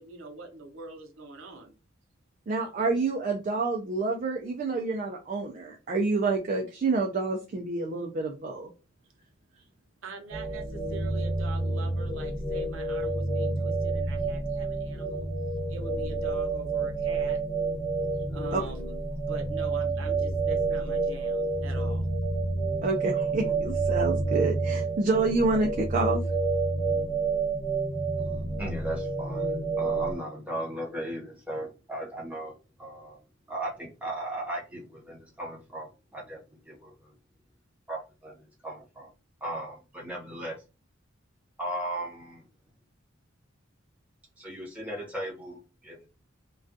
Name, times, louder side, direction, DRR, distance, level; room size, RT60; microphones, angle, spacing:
voice 1, 0.0-1.7 10.0-15.3 15.7-17.4 18.3-19.0 19.3-22.0, right 3 dB, 70° right, 0.7 m, -43 dB
voice 2, 2.5-8.7 18.5-18.6 22.8-26.2, right 3 dB, 40° right, 0.3 m, -28 dB
sound 1, 10.3-30.2, right 3 dB, 30° left, 1.1 m, -29 dB
voice 3, 28.2-32.5 32.8-33.2 33.5-37.1 37.9-39.1 39.4-40.6 41.6-42.4 44.4-46.1, right 1 dB, 5° right, 0.8 m, -37 dB
2.3 x 2.2 x 2.5 m
head